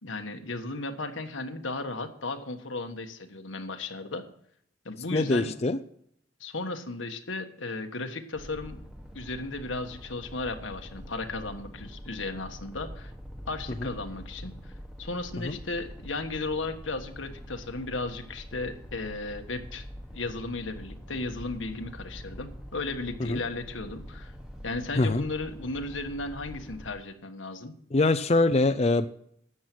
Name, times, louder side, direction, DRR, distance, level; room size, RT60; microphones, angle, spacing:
voice 1, 0.0-4.2 4.8-5.5 6.4-8.8 9.1-13.1 13.5-14.7 15.0-19.8 20.1-24.3 24.6-27.7, left 3 dB, 90° left, 6 dB, 1.4 m, -35 dB
voice 2, 5.1-5.8 13.8-13.9 15.4-15.6 23.3-23.4 25.0-25.2 27.9-29.1, left 2 dB, 35° left, 9 dB, 0.5 m, -23 dB
sound 1, 8.3-26.9, equal, 5° right, 1.3 m, -44 dB
13.0 x 8.7 x 6.1 m, 0.67 s
head